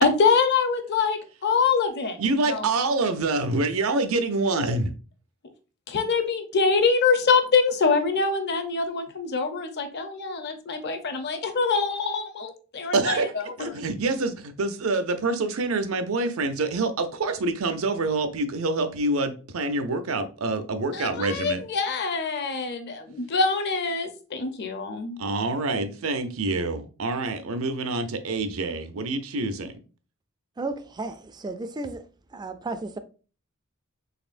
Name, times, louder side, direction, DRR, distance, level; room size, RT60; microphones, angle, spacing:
voice 1, 0.0-2.2 2.5-2.6 5.9-13.7 20.9-25.2, left 4 dB, 50° left, 0.6 m, -24 dB
voice 2, 2.2-4.9 12.9-13.3 13.6-21.6 25.2-29.7, right 3 dB, 70° right, 0.6 m, -26 dB
voice 3, 30.6-32.0 32.3-33.0, right 3 dB, 20° right, 0.3 m, -33 dB
4.1 x 3.3 x 2.5 m
head